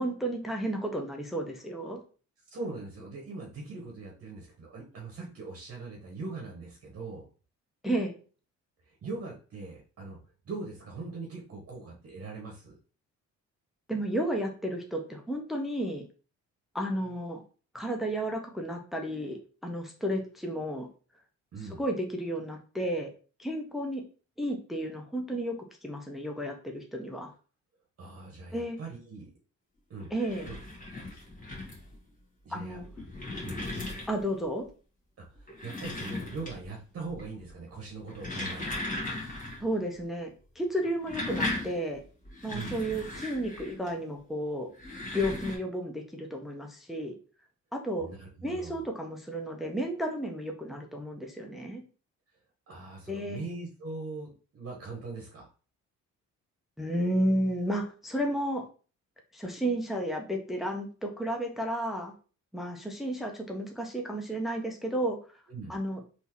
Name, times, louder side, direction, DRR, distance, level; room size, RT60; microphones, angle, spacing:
voice 1, 0.0-2.0 7.8-8.1 13.9-16.0 16.7-17.4 17.7-20.9 21.8-23.1 23.4-24.0 24.4-27.3 28.5-28.8 30.1-30.5 32.5-32.8 34.1-34.7 39.6-40.3 40.6-42.0 42.4-44.7 45.1-47.1 47.7-48.1 48.4-51.8 53.1-53.4 56.8-58.6 59.3-62.1 62.5-65.4 65.7-66.1, right 1 dB, ahead, 2 dB, 0.6 m, -32 dB
voice 2, 2.5-7.2 8.8-10.2 10.4-12.7 21.5-21.8 28.0-29.3 29.9-30.1 30.4-30.6 32.4-32.8 33.4-33.6 35.3-38.8 42.5-42.8 48.0-48.8 52.7-55.5 65.5-65.8, right 3 dB, 50° right, -1 dB, 1.0 m, -41 dB
sound 1, 30.0-32.0 32.7-34.4 35.3-36.8 37.1-37.5 38.0-39.7 39.9-40.0 40.8-43.9 44.6-45.6, left 2 dB, 25° left, 1.5 m, -37 dB
3.5 x 2.7 x 3.0 m, 0.38 s
cardioid pair, 90°, 30 cm